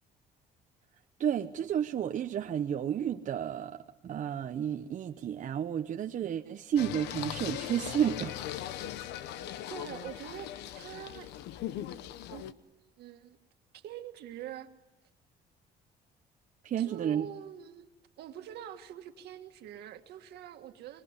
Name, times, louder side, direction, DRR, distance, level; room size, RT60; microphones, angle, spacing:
voice 1, 1.2-8.4 16.6-17.2, right 9 dB, 50° right, 1.0 m, -31 dB
Singing, 6.8-12.5, left 12 dB, 85° left, 1.0 m, -39 dB
voice 2, 9.7-11.3 12.3-12.5 13.0-13.4 13.7-14.7 16.8-17.9 18.2-21.0, right 11 dB, 75° right, 2.0 m, -45 dB
25.5 x 22.0 x 9.8 m
cardioid pair, 110°, 17 cm